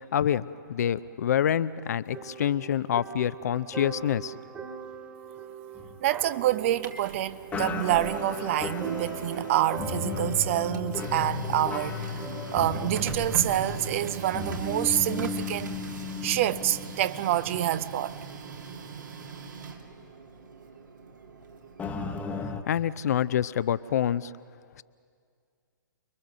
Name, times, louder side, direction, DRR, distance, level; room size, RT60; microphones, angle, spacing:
voice 1, 0.1-4.4 22.7-24.3, left 10 dB, 50° left, 0.6 m, -27 dB
sound 1, 2.1-15.4, right 4 dB, 15° right, 1.8 m, -41 dB
sound 2, 5.8-7.1 7.5-17.9 18.2-18.4 19.0-19.1 21.8-22.6, left 5 dB, 10° left, 1.1 m, -36 dB
voice 2, 6.0-12.2 12.5-15.8 16.2-18.2, right 13 dB, 40° right, 0.6 m, -27 dB
Printer, 6.5-22.3, right 5 dB, 65° right, 2.4 m, -41 dB
29.0 x 22.5 x 6.7 m
figure-of-eight pair, 120°, 11 cm